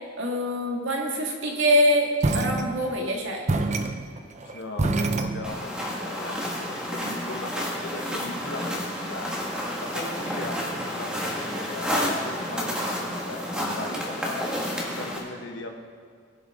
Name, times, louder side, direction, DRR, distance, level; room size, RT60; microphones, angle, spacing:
voice 1, 0.2-3.5, equal, 70° right, 0 dB, 1.8 m, -24 dB
sound 1, 2.2-3.1 3.5-5.8, right 2 dB, 35° right, 0.6 m, -27 dB
voice 2, 4.4-9.3 9.8-14.5 14.9-15.7, left 2 dB, 70° left, 3 dB, 1.3 m, -38 dB
sound 2, 5.4-15.2, equal, 5° right, 1.7 m, -30 dB
21.0 x 7.2 x 3.6 m, 2.1 s
head